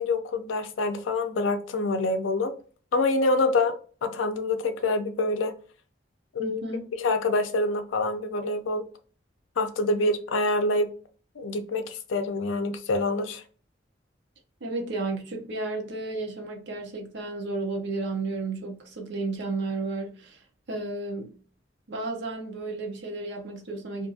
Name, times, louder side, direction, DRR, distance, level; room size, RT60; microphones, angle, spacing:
voice 1, 0.0-2.5 2.9-3.7 4.0-5.5 6.3-6.6 6.9-8.8 9.6-10.9 11.4-13.4, left 2 dB, 80° left, 0.4 m, -26 dB
voice 2, 6.4-6.8 14.6-21.3 21.9-24.1, right 3 dB, 65° right, 0.7 m, -33 dB
2.6 x 2.4 x 2.6 m
head